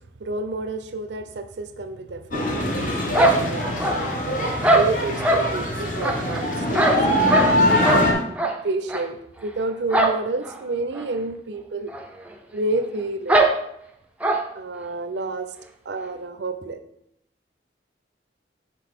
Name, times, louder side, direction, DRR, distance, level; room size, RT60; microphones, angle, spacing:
voice 1, 0.2-7.8 8.1-8.3 8.6-11.9 12.5-13.5 14.5-15.5 15.9-16.8, right 2 dB, 75° right, 9 dB, 0.5 m, -30 dB
sound 1, 2.3-8.1, left 1 dB, 45° left, 1.0 m, -23 dB
sound 2, 3.1-4.2 4.6-5.5 6.0-7.6 7.8-8.1 8.4-8.6 8.9-9.0 9.9-10.2 10.4-10.5 10.9-11.0 11.9-12.0 12.3-12.4 13.3-13.5 14.2-14.4, right 2 dB, 5° right, 0.4 m, -20 dB
5.8 x 5.1 x 3.6 m, 0.77 s
head